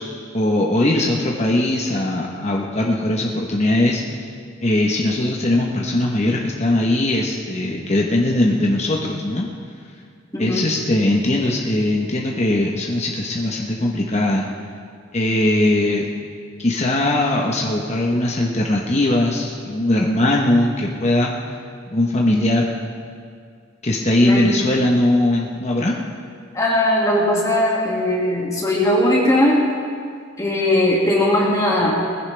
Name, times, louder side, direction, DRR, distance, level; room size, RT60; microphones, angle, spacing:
voice 1, 0.3-4.2 4.6-9.5 10.4-14.5 15.1-16.1 16.6-21.3 21.9-22.7 23.8-25.9, left 1 dB, 35° left, -1 dB, 1.0 m, -20 dB
voice 2, 10.3-10.7 24.3-24.5 26.5-29.6 30.4-31.9, left 1 dB, 15° left, -4 dB, 2.1 m, -18 dB
20.0 x 15.5 x 3.3 m, 2.2 s
head